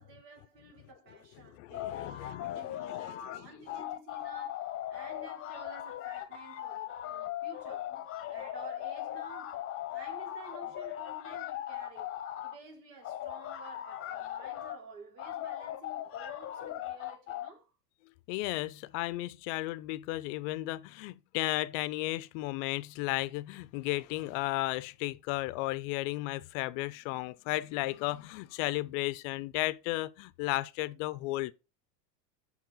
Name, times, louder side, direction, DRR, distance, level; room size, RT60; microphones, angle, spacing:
voice 1, 0.0-8.0 8.3-17.7, right 3 dB, 85° right, 2.4 m, -52 dB
voice 2, 1.6-3.5 18.3-31.5, left 19 dB, 50° left, 0.5 m, -34 dB
sound 1, 1.7-3.4 3.7-12.6 13.0-14.8 15.2-17.5, left 12 dB, 25° left, 0.8 m, -39 dB
5.7 x 4.5 x 3.8 m
supercardioid pair, 120°, 48 cm